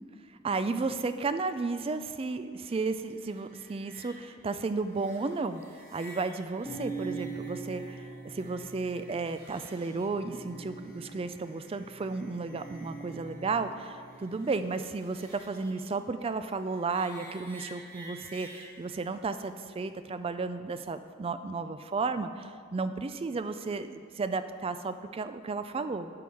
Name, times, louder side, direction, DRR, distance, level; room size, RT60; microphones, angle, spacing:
voice 1, 0.4-5.6 5.9-26.1, right 4 dB, 25° right, 11 dB, 0.3 m, -33 dB
sound 1, 2.6-20.4, equal, 40° right, 2.3 m, -54 dB
sound 2, 6.6-14.8, right 4 dB, 5° left, 1.8 m, -44 dB
11.5 x 5.5 x 4.8 m, 2.1 s
head